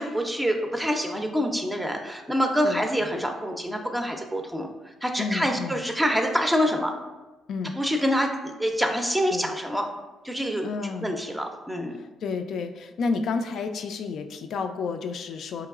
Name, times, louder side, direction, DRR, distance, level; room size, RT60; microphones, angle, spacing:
voice 1, 0.0-4.7 5.0-6.9 7.8-9.9 10.2-10.7 11.0-12.0, equal, 5° right, 3 dB, 0.5 m, -26 dB
voice 2, 2.6-3.1 5.2-5.8 7.5-7.8 9.3-9.6 10.6-11.1 11.9-15.7, left 4 dB, 70° left, 7 dB, 0.3 m, -31 dB
4.6 x 2.9 x 2.4 m, 1.2 s
cardioid pair, 90°, 0 cm